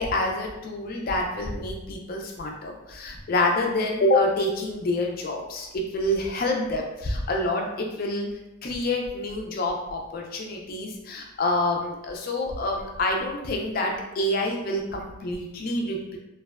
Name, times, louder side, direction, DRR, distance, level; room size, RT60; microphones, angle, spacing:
voice 1, 0.0-8.3 8.6-16.2, left 1 dB, 45° left, 1 dB, 0.4 m, -27 dB
2.6 x 2.1 x 2.3 m, 0.95 s
head